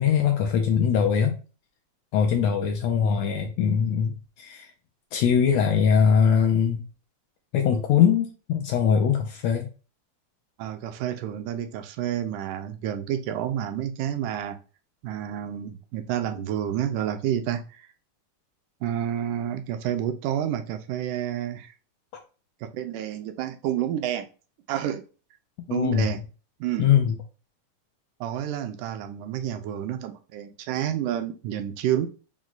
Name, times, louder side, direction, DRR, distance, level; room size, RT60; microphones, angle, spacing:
voice 1, 0.0-1.4 2.1-4.7 5.1-6.8 7.5-9.7 25.7-26.1 26.8-27.1, left 7 dB, 80° left, 3 dB, 1.6 m, -22 dB
voice 2, 10.6-14.6 15.0-17.9 18.8-21.7 22.7-24.3 24.7-25.0 25.7-26.2 26.6-26.9 28.2-32.1, right 10 dB, 90° right, 6 dB, 2.1 m, -29 dB
6.0 x 2.2 x 3.9 m, 0.35 s
omnidirectional pair, 3.5 m